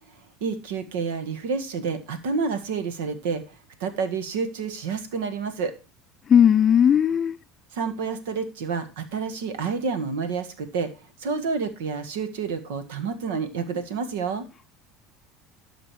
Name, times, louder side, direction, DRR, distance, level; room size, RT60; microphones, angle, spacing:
voice 1, 0.4-5.7 7.7-10.9 11.2-14.5, right 5 dB, 80° right, 1.7 m, -29 dB
voice 2, 6.3-7.4, left 8 dB, 35° left, 0.4 m, -17 dB
12.5 x 5.2 x 4.7 m
hypercardioid pair, 85°, 0 cm